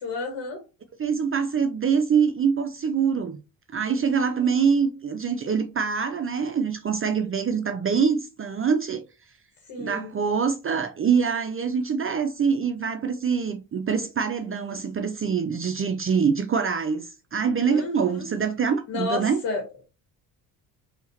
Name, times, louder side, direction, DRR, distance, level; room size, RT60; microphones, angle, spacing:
voice 1, 0.0-0.6 4.3-4.4 4.6-4.8 9.7-10.1 17.7-18.3 18.9-19.6, left 3 dB, 65° left, 1.7 m, -31 dB
voice 2, 1.0-3.4 3.7-9.0 9.8-19.4, right 6 dB, 30° right, 0.5 m, -24 dB
5.5 x 2.9 x 2.9 m
supercardioid pair, 65°, 45 cm